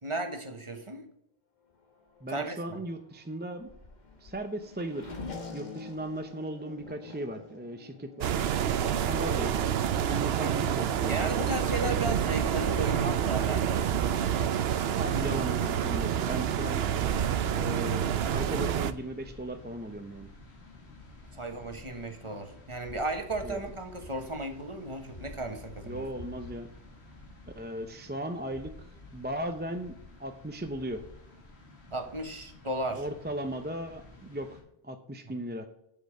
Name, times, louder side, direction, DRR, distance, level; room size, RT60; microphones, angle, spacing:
voice 1, 0.0-1.0 2.3-2.8 10.4-10.8 11.1-13.8 15.1-15.2 21.3-26.0 31.9-33.0, right 2 dB, 30° right, 5 dB, 1.3 m, -35 dB
Race car auto racing / Accelerating revving vroom, 1.6-17.9, left 3 dB, 45° left, 1.4 m, -49 dB
voice 2, 2.2-3.7 4.2-5.1 5.5-8.3 9.1-9.6 10.0-11.5 14.9-16.8 17.5-20.3 23.4-23.6 25.8-26.7 27.6-28.7 29.1-29.9 30.2-31.0 32.9-34.6 34.8-35.7, right 1 dB, 15° right, 6 dB, 0.5 m, -37 dB
sound 1, 8.2-18.9, right 9 dB, 75° right, 0.9 m, -28 dB
sound 2, 16.3-34.6, left 2 dB, 90° left, 2.3 m, -50 dB
8.1 x 6.7 x 6.5 m, 0.79 s
omnidirectional pair, 1.1 m